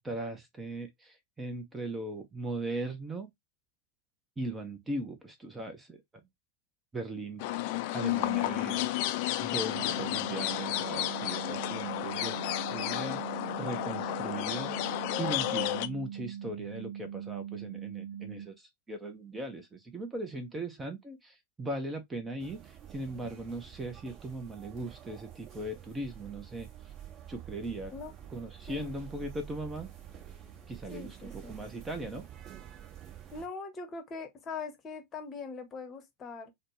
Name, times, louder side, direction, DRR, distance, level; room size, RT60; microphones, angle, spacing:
voice 1, 0.0-3.3 4.4-6.0 6.9-7.4 7.9-8.9 9.4-12.4 12.7-13.2 13.6-26.9 27.3-27.9 28.3-29.9 30.7-32.3, right 2 dB, 15° right, 0.6 m, -39 dB
sound 1, 7.4-15.9, left 15 dB, 45° left, 0.3 m, -32 dB
sound 2, 9.7-18.5, right 9 dB, 75° right, 0.3 m, -41 dB
sound 3, 22.4-33.5, right 10 dB, 30° right, 1.1 m, -48 dB
voice 2, 30.9-31.6 33.3-36.5, left 4 dB, 25° left, 0.9 m, -41 dB
4.1 x 2.1 x 3.0 m
figure-of-eight pair, 90°, 0 cm